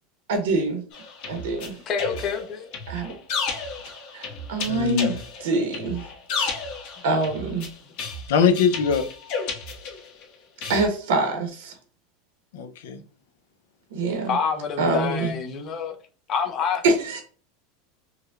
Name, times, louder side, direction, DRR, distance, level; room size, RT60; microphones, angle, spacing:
voice 1, 0.3-0.8 1.3-1.8 2.9-3.1 4.1-6.0 6.4-6.5 7.0-7.7 10.7-11.7 13.9-14.4 14.8-15.3 16.8-17.2, right 3 dB, 85° right, 0.9 m, -25 dB
sound 1, 0.9-10.2 10.6-10.8, left 4 dB, 50° left, 1.1 m, -32 dB
voice 2, 1.9-2.7 14.3-16.0 16.3-16.8, left 6 dB, 30° left, 0.6 m, -27 dB
voice 3, 4.7-5.2 8.3-9.0 12.5-13.0, left 6 dB, 80° left, 0.5 m, -22 dB
4.7 x 2.2 x 2.4 m
supercardioid pair, 165°, 0 cm